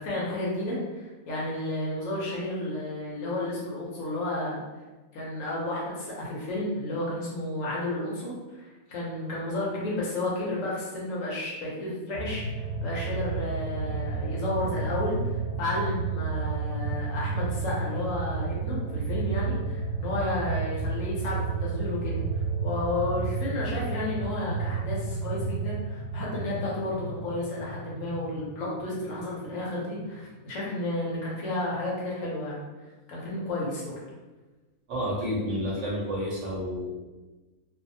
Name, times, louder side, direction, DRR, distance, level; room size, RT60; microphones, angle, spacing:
voice 1, 0.0-4.6 5.1-32.7 33.1-33.9, left 1 dB, 65° left, -5 dB, 1.0 m, -32 dB
sound 1, 12.1-29.7 30.0-30.1, right 4 dB, 35° right, 0.8 m, -31 dB
voice 2, 34.9-37.0, equal, 60° right, -5 dB, 0.9 m, -30 dB
2.6 x 2.3 x 2.6 m, 1.2 s
omnidirectional pair, 1.6 m